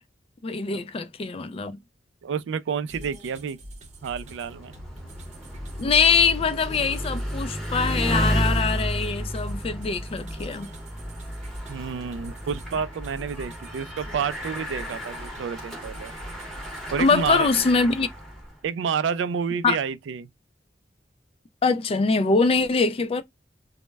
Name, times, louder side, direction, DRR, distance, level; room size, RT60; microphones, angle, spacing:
voice 1, 0.4-1.8 5.8-10.7 17.0-18.1 19.6-19.8 21.6-23.2, left 4 dB, 30° left, 0.3 m, -23 dB
voice 2, 2.2-3.6 4.0-4.7 11.7-16.1 16.9-17.5 18.6-20.3, right 7 dB, 80° right, 0.3 m, -29 dB
sound 1, 2.9-17.7, equal, 40° right, 0.7 m, -44 dB
Bicycle, 3.9-18.6, equal, ahead, 0.8 m, -32 dB
2.1 x 2.1 x 3.3 m
head